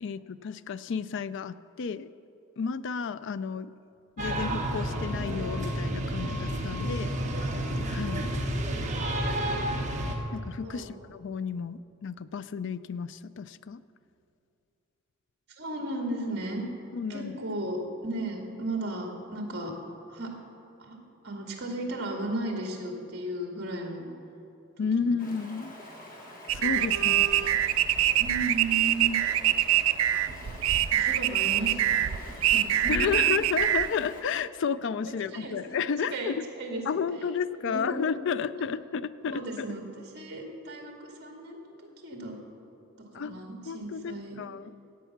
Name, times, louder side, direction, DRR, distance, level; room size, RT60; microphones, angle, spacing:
voice 1, 0.0-2.1 2.6-3.7 4.2-7.1 7.9-8.3 10.3-13.8 16.9-17.4 24.8-25.7 26.5-27.6 32.9-36.4 36.9-39.7 43.1-43.3 43.7-44.7, left 6 dB, 60° left, 15 dB, 0.4 m, -32 dB
sound 1, 4.2-10.2, right 1 dB, 35° right, 1.4 m, -30 dB
voice 2, 15.6-16.6 17.1-17.8 18.0-19.7 20.1-20.3 20.8-21.0 21.2-24.1 25.0-25.1 27.0-27.2 28.2-29.2 30.9-33.2 35.3-35.6 36.1-37.0 37.6-38.0 39.2-41.7 42.0-42.4 43.0-44.4, right 2 dB, 55° right, 1 dB, 2.0 m, -35 dB
Stream, 25.2-34.2, left 1 dB, 40° left, 1.8 m, -46 dB
sound 2, 26.5-33.9, right 12 dB, 70° right, 0.4 m, -24 dB
16.0 x 8.3 x 5.9 m, 2.7 s
head